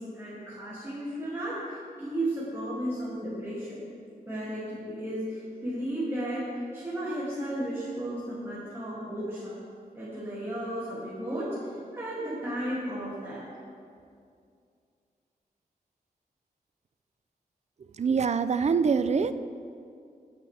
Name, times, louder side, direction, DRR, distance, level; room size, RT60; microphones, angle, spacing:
voice 1, 0.0-3.8 4.3-9.5 9.9-13.4, right 1 dB, 15° right, -10 dB, 2.5 m, -34 dB
voice 2, 18.0-19.3, right 5 dB, 45° right, 12 dB, 0.4 m, -24 dB
16.0 x 9.0 x 3.4 m, 2.3 s
wide cardioid pair, 140°, 16 cm